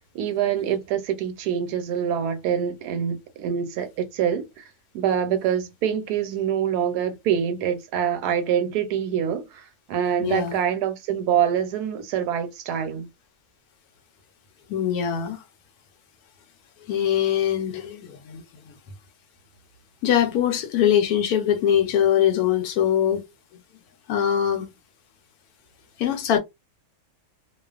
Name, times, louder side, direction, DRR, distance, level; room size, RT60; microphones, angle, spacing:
voice 1, 0.1-4.6 4.9-13.1, right 9 dB, 85° right, 1.1 m, -25 dB
voice 2, 10.2-10.6 14.7-15.4 16.9-18.4 20.0-23.2 24.1-24.7 26.0-26.4, left 9 dB, 75° left, 1.0 m, -22 dB
2.4 x 2.3 x 2.3 m
omnidirectional pair, 1.7 m